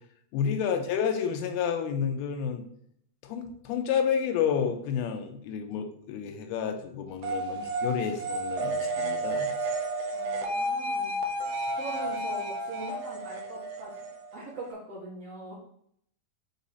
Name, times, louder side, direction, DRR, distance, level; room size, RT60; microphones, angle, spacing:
voice 1, 0.3-2.6 3.2-9.5, left 7 dB, 90° left, 5 dB, 2.6 m, -30 dB
sound 1, 7.2-14.7, right 1 dB, 70° right, 1.8 m, -32 dB
voice 2, 10.1-11.2 11.8-13.9 14.3-15.5, right 1 dB, 55° right, -5 dB, 2.0 m, -41 dB
6.3 x 4.1 x 4.0 m, 0.69 s
omnidirectional pair, 4.4 m